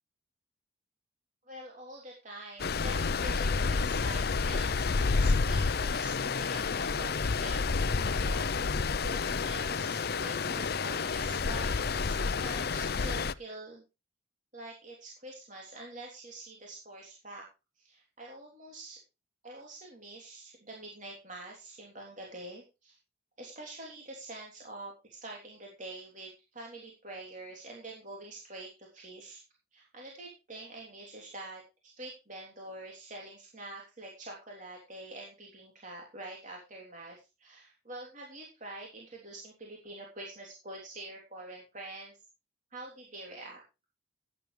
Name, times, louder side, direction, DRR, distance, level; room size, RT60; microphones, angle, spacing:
voice 1, 1.4-8.5 9.0-13.8 14.5-17.5 17.8-19.0 19.4-23.0 23.4-29.4 29.7-42.2 42.7-43.6, right 2 dB, 40° right, -1 dB, 3.3 m, -46 dB
Stream, 2.6-13.3, left 4 dB, 50° left, 0.6 m, -29 dB
15.0 x 10.5 x 3.3 m, 0.28 s
head